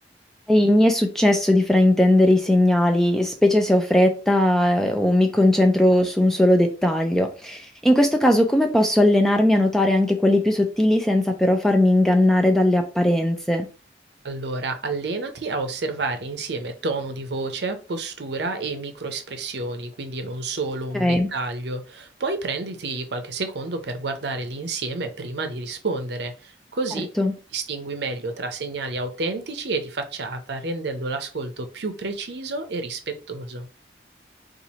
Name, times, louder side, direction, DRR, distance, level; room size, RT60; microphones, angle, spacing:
voice 1, 0.5-13.7 20.9-21.3 27.2-27.3, left 1 dB, ahead, 0.4 m, -18 dB
voice 2, 14.2-27.1 27.5-33.7, right 3 dB, 70° right, 0.6 m, -30 dB
2.8 x 2.5 x 4.2 m
head